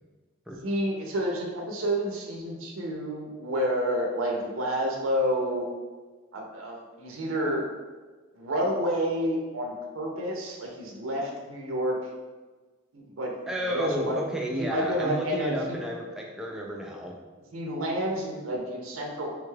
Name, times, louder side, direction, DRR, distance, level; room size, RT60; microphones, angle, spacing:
voice 1, 0.6-5.7 6.3-7.7 8.4-12.0 12.9-13.4 13.7-14.2 14.6-15.8 17.5-19.3, equal, 80° right, 0 dB, 0.5 m, -29 dB
voice 2, 13.5-17.1, equal, 5° right, -1 dB, 0.3 m, -32 dB
3.5 x 2.3 x 3.1 m, 1.3 s
head